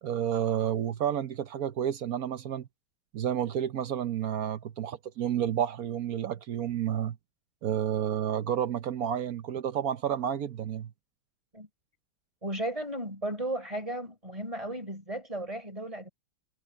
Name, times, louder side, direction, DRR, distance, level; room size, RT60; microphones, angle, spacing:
voice 1, 0.0-2.7 3.1-7.2 7.6-10.9, right 9 dB, 60° right, 1.0 m, -30 dB
voice 2, 12.4-16.1, right 1 dB, 15° right, 4.2 m, -35 dB
omnidirectional pair, 2.3 m